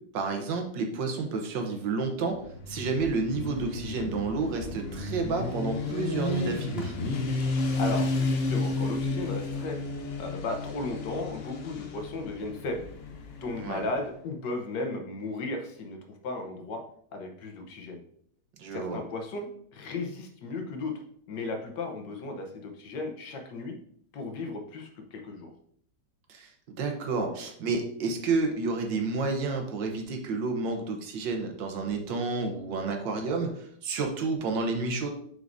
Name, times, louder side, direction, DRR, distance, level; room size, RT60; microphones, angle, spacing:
voice 1, 0.1-2.4 2.7-6.9 13.6-13.8 18.6-19.0 26.3-35.1, right 4 dB, 85° right, 3 dB, 1.7 m, -30 dB
Motorcycle, 2.3-14.0, left 3 dB, 50° left, 0.7 m, -32 dB
voice 2, 7.8-9.8 10.2-12.9 13.4-16.0 16.2-16.8 17.1-18.0 18.7-23.7 24.1-25.5, left 2 dB, 75° left, 4 dB, 1.6 m, -35 dB
6.2 x 5.8 x 2.6 m, 0.64 s
omnidirectional pair, 1.9 m